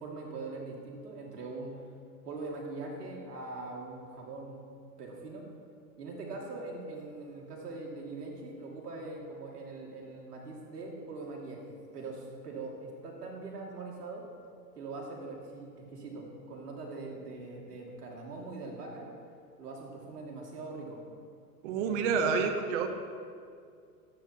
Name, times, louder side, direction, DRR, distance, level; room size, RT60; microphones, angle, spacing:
voice 1, 0.0-1.7 2.2-4.6 5.0-5.5 6.0-11.6 11.9-14.2 14.8-19.1 19.6-21.0, right 3 dB, 80° right, -2 dB, 2.5 m, -42 dB
voice 2, 21.6-22.9, right 5 dB, 50° right, 6 dB, 1.2 m, -28 dB
13.0 x 9.0 x 2.9 m, 2.3 s
hypercardioid pair, 110°, 46 cm